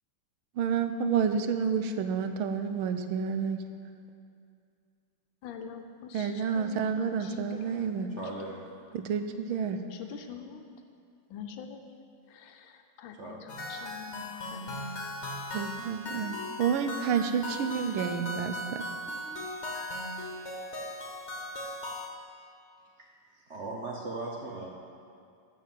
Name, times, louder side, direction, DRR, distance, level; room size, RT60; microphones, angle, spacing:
voice 1, 0.6-3.6 6.1-8.1 8.9-9.8 15.5-18.8, right 6 dB, 85° right, 8 dB, 1.5 m, -29 dB
voice 2, 5.4-6.9 7.2-8.0 8.5-8.6 9.9-10.6 11.3-11.9 12.3-15.2, left 7 dB, 75° left, 6 dB, 1.4 m, -45 dB
voice 3, 8.2-8.6 13.2-13.4 23.0-23.1 23.3-24.7, right 2 dB, 55° right, -1 dB, 0.8 m, -39 dB
sound 1, 13.5-22.1, left 1 dB, 40° left, 1.3 m, -38 dB
13.0 x 4.7 x 7.4 m, 2.4 s
omnidirectional pair, 2.2 m